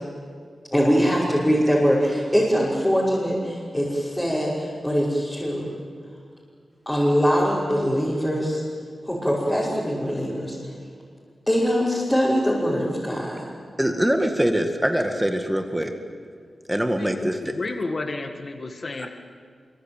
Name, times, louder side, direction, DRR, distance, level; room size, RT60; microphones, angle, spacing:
voice 1, 0.7-5.7 6.9-8.6 9.0-10.6 11.5-13.4, equal, 10° left, -7 dB, 5.9 m, -22 dB
voice 2, 13.8-15.9 16.7-17.5, equal, 5° right, 5 dB, 1.9 m, -23 dB
voice 3, 17.0-19.1, left 3 dB, 45° left, 6 dB, 1.7 m, -31 dB
25.5 x 24.0 x 9.1 m, 2.2 s
wide cardioid pair, 95°, 0 cm